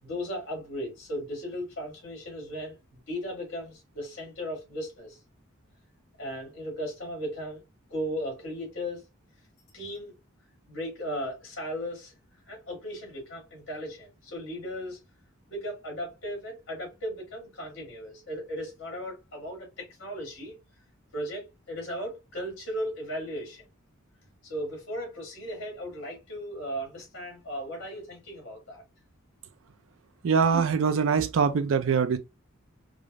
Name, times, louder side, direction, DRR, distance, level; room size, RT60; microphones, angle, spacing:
voice 1, 0.0-5.2 6.2-7.6 7.9-9.0 9.7-10.1 10.7-12.1 12.5-15.0 15.5-20.5 21.1-23.6 24.4-28.8, equal, 60° left, 2.1 m, -36 dB
voice 2, 30.2-32.2, right 6 dB, 70° right, 0.4 m, -23 dB
4.8 x 2.0 x 2.4 m
head